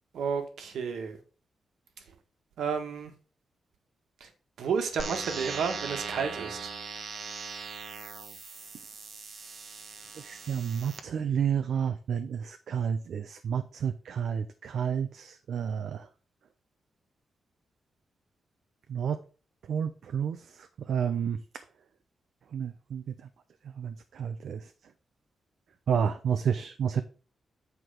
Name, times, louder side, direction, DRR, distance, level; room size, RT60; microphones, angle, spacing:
voice 1, 0.1-1.2 2.0-2.1 2.6-3.1 4.2-4.3 4.6-6.7, right 6 dB, 80° right, 6 dB, 1.5 m, -31 dB
sound 1, 5.0-11.0, right 5 dB, 45° right, 1.0 m, -40 dB
voice 2, 10.1-16.1 18.9-19.2 19.7-21.4 22.5-23.1 23.8-24.7 25.9-27.0, right 7 dB, 65° right, 8 dB, 0.6 m, -30 dB
8.0 x 4.7 x 5.0 m, 0.36 s
wide cardioid pair, 145°, 0 cm